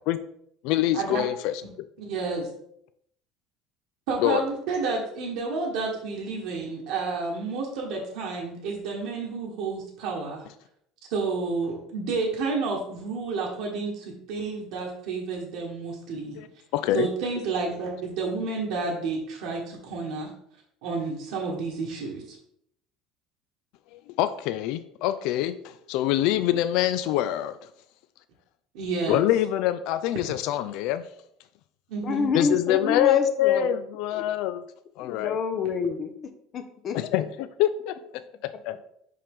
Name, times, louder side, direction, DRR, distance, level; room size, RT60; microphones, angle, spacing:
voice 1, 0.6-1.5 4.2-4.4 16.4-16.5 16.7-17.1 23.9-27.6 29.1-31.1 32.3-34.6 35.0-35.4 36.9-38.0 38.4-38.8, left 12 dB, 70° left, 12 dB, 0.3 m, -25 dB
voice 2, 2.0-2.5 4.1-10.4 11.1-16.4 16.9-20.3 20.8-22.4 28.7-29.2 31.9-32.3, right 4 dB, 75° right, -5 dB, 1.3 m, -30 dB
voice 3, 32.0-33.7 34.1-34.2 35.0-36.1 36.5-37.0, left 5 dB, 45° left, 7 dB, 0.7 m, -28 dB
5.4 x 5.1 x 3.6 m, 0.71 s
supercardioid pair, 90°, 0 cm